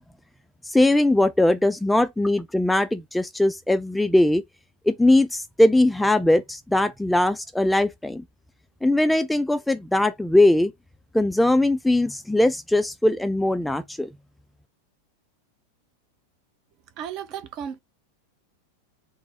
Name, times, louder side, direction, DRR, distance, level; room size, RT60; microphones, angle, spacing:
voice 1, 0.7-4.4 4.9-8.2 8.8-10.7 11.1-14.1, left 1 dB, 5° left, 0.3 m, -20 dB
voice 2, 17.0-17.8, right 8 dB, 40° right, 0.6 m, -34 dB
4.0 x 2.1 x 4.1 m
figure-of-eight pair, 90°, 0 cm